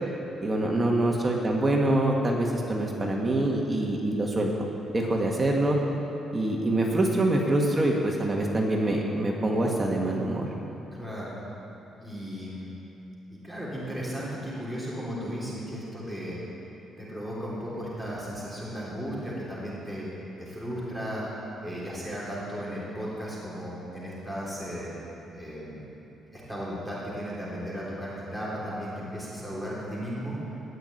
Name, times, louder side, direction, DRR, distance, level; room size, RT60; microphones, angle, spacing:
voice 1, 0.4-4.7 4.9-5.8 6.3-10.5, right 1 dB, 20° right, -1 dB, 1.6 m, -25 dB
voice 2, 10.9-11.3 12.0-12.7 13.4-16.4 17.0-20.1 20.4-21.2 21.6-24.9 25.3-25.8 26.3-30.4, equal, 5° left, -7 dB, 3.3 m, -35 dB
17.5 x 6.0 x 9.6 m, 3.0 s
cardioid pair, 140°, 0 cm